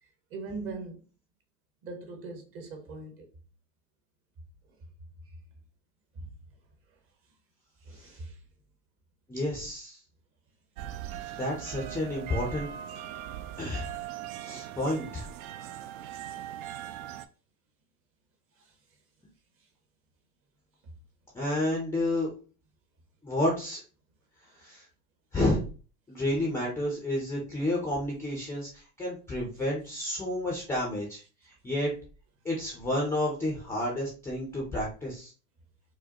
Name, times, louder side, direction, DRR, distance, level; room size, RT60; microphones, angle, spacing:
voice 1, 0.3-1.0 1.8-3.3 7.8-8.4 16.0-16.5 18.6-18.7, right 3 dB, 25° right, 0.8 m, -41 dB
voice 2, 9.3-10.0 11.3-12.7 13.6-13.9 14.4-15.3 21.3-22.3 23.2-23.8 24.6-24.8 25.3-25.6 26.1-31.9 32.4-35.3, left 1 dB, 5° left, 0.5 m, -30 dB
sound 1, 10.8-17.3, right 11 dB, 65° right, 0.5 m, -40 dB
4.8 x 2.1 x 2.8 m
hypercardioid pair, 130°, 49 cm